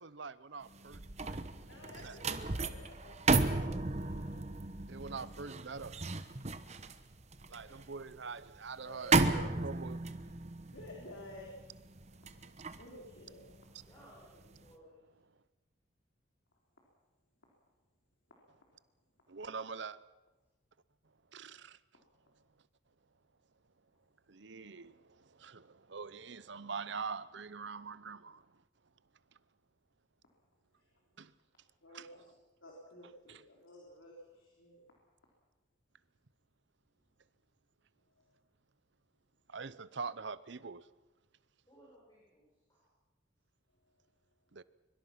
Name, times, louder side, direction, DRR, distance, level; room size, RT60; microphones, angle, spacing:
voice 1, 0.0-1.4 2.0-2.2 4.9-6.1 7.5-10.0 12.4-12.7 19.3-20.0 21.3-21.8 24.3-28.5 31.2-31.3 31.9-32.1 33.3-33.4 39.5-40.9 44.5-44.6, right 5 dB, 65° right, 17 dB, 0.8 m, -44 dB
sound 1, 0.7-14.0 14.4-14.7, right 3 dB, 35° right, 1.0 m, -35 dB
voice 2, 1.6-4.5 7.5-7.6 8.8-9.4 10.5-11.5 12.8-13.5 30.8-30.9 31.8-32.3 32.6-34.8, left 1 dB, 85° left, -2 dB, 3.8 m, -52 dB
voice 3, 13.8-15.1 41.7-42.9, equal, 20° left, -5 dB, 6.4 m, -61 dB
24.0 x 23.0 x 6.0 m, 1.1 s
head